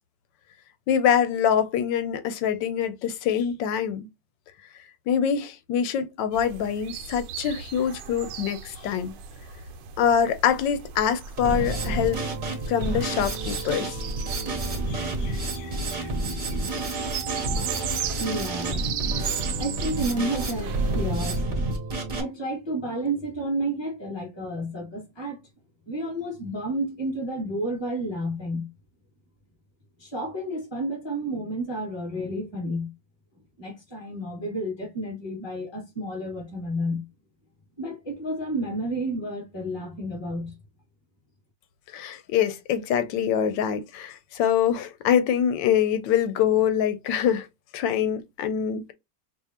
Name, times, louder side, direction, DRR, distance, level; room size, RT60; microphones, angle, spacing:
voice 1, 0.9-4.1 5.1-9.1 10.0-12.2 12.7-14.0 14.9-16.1 41.9-47.5 47.7-48.9, left 8 dB, 85° left, 1.3 m, -25 dB
sound 1, 6.3-21.5, right 7 dB, 85° right, 1.3 m, -37 dB
Drum kit, 11.4-22.2, right 2 dB, 35° right, 0.9 m, -29 dB
voice 2, 18.2-21.5 22.2-25.4 25.9-28.7 30.0-32.9 33.6-37.0 37.8-40.5, right 1 dB, 15° left, 1.7 m, -31 dB
4.8 x 2.5 x 2.9 m
omnidirectional pair, 1.9 m